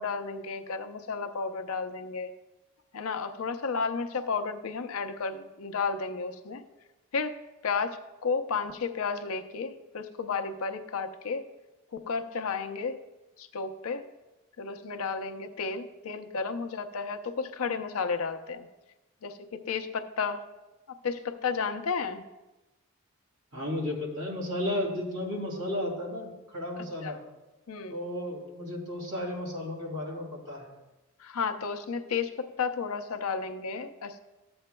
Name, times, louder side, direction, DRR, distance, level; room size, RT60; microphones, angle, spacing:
voice 1, 0.0-2.3 2.9-6.6 7.1-7.3 7.6-8.0 8.2-11.4 11.9-13.0 13.4-14.0 14.6-18.7 19.2-19.4 19.7-20.4 21.0-22.2 27.0-27.1 27.7-28.0 31.2-34.2, left 5 dB, 80° left, 8 dB, 0.6 m, -32 dB
voice 2, 23.5-27.2 27.9-30.7, left 1 dB, 70° right, -1 dB, 2.5 m, -33 dB
13.0 x 7.8 x 2.2 m, 1.0 s
head